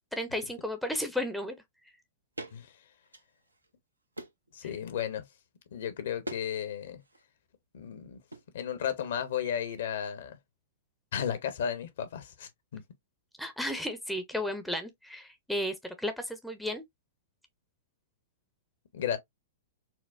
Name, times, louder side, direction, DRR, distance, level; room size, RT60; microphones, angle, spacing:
voice 1, 0.1-1.6 13.4-16.8, left 1 dB, ahead, 0.5 m, -33 dB
sound 1, 2.4-2.6 3.0-3.7 4.1-4.5 6.2-6.5 6.8-7.2 8.3-8.5, right 1 dB, 80° right, 0.6 m, -43 dB
voice 2, 4.5-5.3 5.7-7.0 7.7-8.2 8.5-10.4 11.1-12.8 18.9-19.2, left 8 dB, 55° left, 0.7 m, -34 dB
4.4 x 2.1 x 2.4 m
figure-of-eight pair, 105°, 0 cm